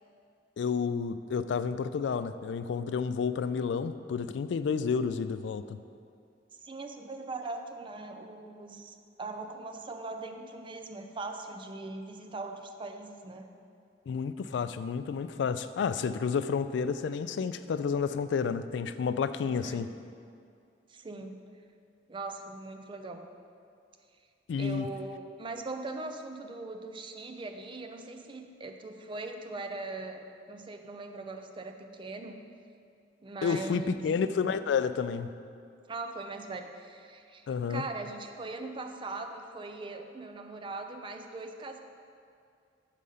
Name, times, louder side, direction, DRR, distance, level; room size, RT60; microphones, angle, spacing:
voice 1, 0.6-5.8 14.1-19.9 24.5-24.9 33.4-35.3 37.5-37.8, left 6 dB, 70° left, 12 dB, 0.3 m, -30 dB
voice 2, 6.6-13.5 19.4-19.9 20.9-21.4 22.1-23.3 24.6-32.4 33.2-34.1 35.9-41.8, right 3 dB, 30° right, 5 dB, 0.5 m, -40 dB
6.7 x 4.9 x 5.5 m, 2.4 s
head